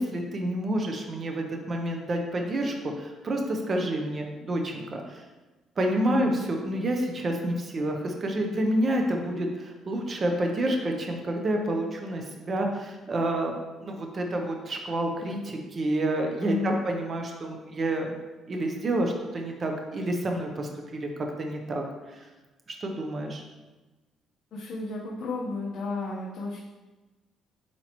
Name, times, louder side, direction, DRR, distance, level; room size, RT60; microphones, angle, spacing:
voice 1, 0.0-5.2 5.8-18.2 18.5-20.7 21.0-22.3 22.7-23.4, right 1 dB, 30° right, 2 dB, 0.7 m, -29 dB
voice 2, 16.4-16.8 24.5-26.6, left 3 dB, 50° left, -5 dB, 1.0 m, -32 dB
8.2 x 4.6 x 3.0 m, 1.2 s
cardioid pair, 170°, 0 cm